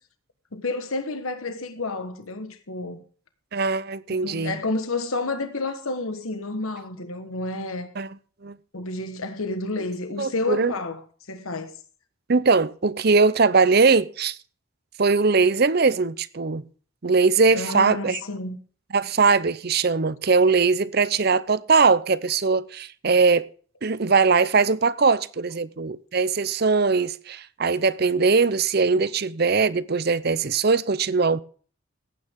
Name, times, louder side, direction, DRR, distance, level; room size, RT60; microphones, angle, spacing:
voice 1, 0.5-3.0 4.1-7.9 8.7-11.0 11.3-11.7 17.5-18.6, left 2 dB, 80° left, 1.4 m, -30 dB
voice 2, 3.5-4.6 8.0-8.2 8.4-8.6 10.2-10.7 12.3-14.4 15.0-16.6 17.0-18.2 18.9-23.5 23.8-31.4, right 4 dB, 50° right, 0.6 m, -21 dB
17.0 x 9.3 x 3.7 m
head